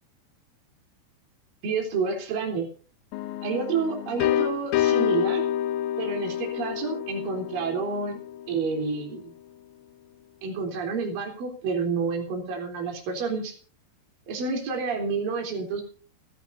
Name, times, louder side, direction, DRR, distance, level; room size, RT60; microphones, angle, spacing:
voice 1, 1.6-2.7 3.4-5.4 6.0-8.2 8.5-9.3 10.4-13.5 14.3-15.8, right 5 dB, 50° right, 3 dB, 5.1 m, -29 dB
sound 1, 3.1-8.8, left 11 dB, 80° left, 2.1 m, -28 dB
29.5 x 11.0 x 2.7 m, 0.38 s
omnidirectional pair, 5.4 m